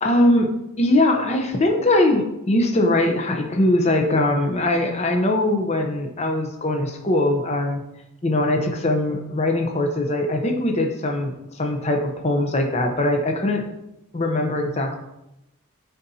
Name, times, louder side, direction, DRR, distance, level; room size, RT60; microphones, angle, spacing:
voice 1, 0.0-7.8 8.2-13.6 14.1-15.0, left 1 dB, 30° left, 3 dB, 0.7 m, -21 dB
12.5 x 4.1 x 2.8 m, 0.87 s
head